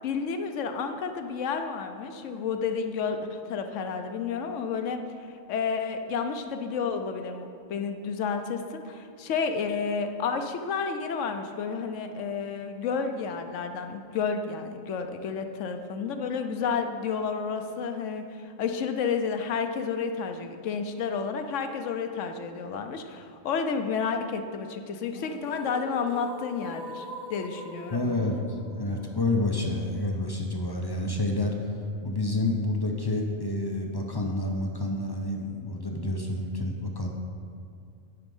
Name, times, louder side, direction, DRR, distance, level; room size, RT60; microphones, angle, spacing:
voice 1, 0.0-5.0 5.5-28.0, left 5 dB, 70° left, 7 dB, 0.9 m, -31 dB
sound 1, 24.9-30.9, equal, 85° left, 2.2 m, -44 dB
voice 2, 27.9-28.4 28.8-31.7 32.0-37.1, left 2 dB, 35° left, 1 dB, 0.4 m, -29 dB
9.6 x 5.1 x 5.4 m, 2.4 s
omnidirectional pair, 1.4 m